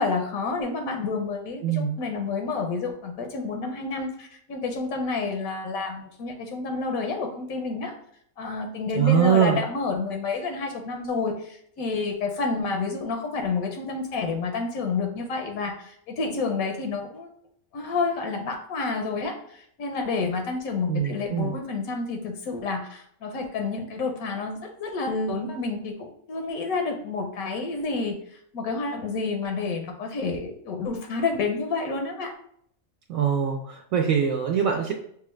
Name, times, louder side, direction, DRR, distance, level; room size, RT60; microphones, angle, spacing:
voice 1, 0.0-7.9 8.4-17.3 17.7-32.3, left 4 dB, 85° left, 4 dB, 1.1 m, -29 dB
voice 2, 1.6-2.0 8.9-9.6 20.9-21.6 33.1-34.9, right 8 dB, 75° right, 1 dB, 1.0 m, -23 dB
6.2 x 2.3 x 3.1 m, 0.67 s
omnidirectional pair, 1.5 m